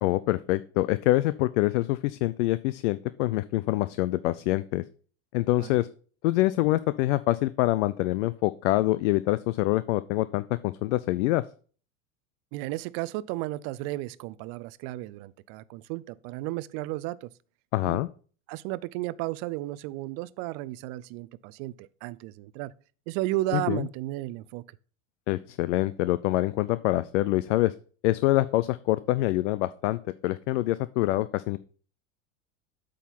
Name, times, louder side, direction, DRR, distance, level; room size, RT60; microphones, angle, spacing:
voice 1, 0.0-4.8 5.3-5.9 6.2-11.4 17.7-18.1 23.5-23.9 25.3-27.7 28.0-31.6, left 17 dB, 65° left, 0.5 m, -25 dB
voice 2, 12.5-17.3 17.8-18.0 18.5-22.7 23.1-24.6, right 18 dB, 50° right, 0.5 m, -33 dB
8.3 x 3.8 x 5.8 m
hypercardioid pair, 90°, 40 cm